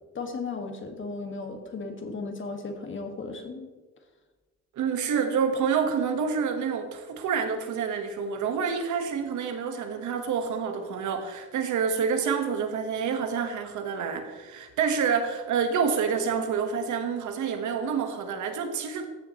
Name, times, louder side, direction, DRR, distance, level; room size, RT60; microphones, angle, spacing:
voice 1, 0.2-3.7, left 3 dB, 40° left, 4 dB, 1.8 m, -35 dB
voice 2, 4.7-19.1, right 6 dB, 75° right, 6 dB, 1.4 m, -28 dB
14.5 x 7.4 x 3.1 m, 1.3 s
cardioid pair, 90°, 30 cm